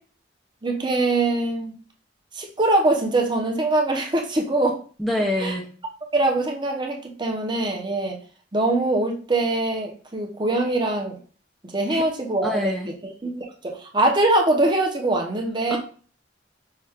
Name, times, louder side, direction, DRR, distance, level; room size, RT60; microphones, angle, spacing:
voice 1, 0.6-1.8 2.3-4.8 5.4-5.5 6.1-8.2 8.5-11.2 11.7-15.8, right 2 dB, 25° right, 1 dB, 0.8 m, -23 dB
voice 2, 5.0-5.7 11.9-12.0 12.4-12.9 15.7-15.8, left 1 dB, ahead, -2 dB, 0.6 m, -25 dB
5.6 x 2.5 x 3.5 m, 0.40 s
head